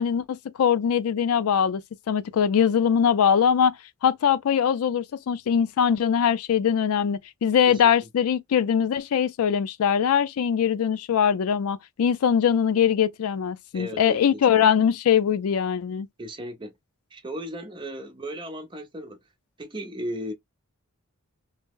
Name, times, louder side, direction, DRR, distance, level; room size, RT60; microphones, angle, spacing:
voice 1, 0.0-1.8 2.1-3.7 4.0-16.1, left 8 dB, 75° left, 0.4 m, -22 dB
voice 2, 13.7-14.7 16.2-16.7 17.1-19.2 19.6-20.3, equal, 20° right, 0.7 m, -36 dB
2.8 x 2.0 x 3.5 m
head